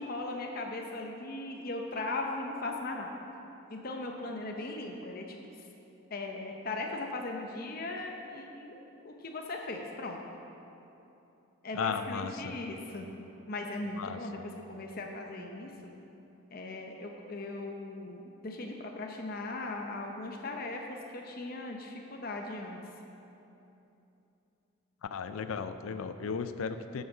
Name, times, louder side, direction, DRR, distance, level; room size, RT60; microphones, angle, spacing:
voice 1, 0.0-3.1 3.7-5.4 6.1-10.2 11.6-13.1 13.5-15.7 16.5-22.8, left 2 dB, 45° left, 2 dB, 0.7 m, -38 dB
voice 2, 11.7-12.6 14.0-14.2 25.0-27.0, left 5 dB, 75° left, 10 dB, 0.4 m, -35 dB
8.9 x 6.4 x 6.0 m, 2.9 s
head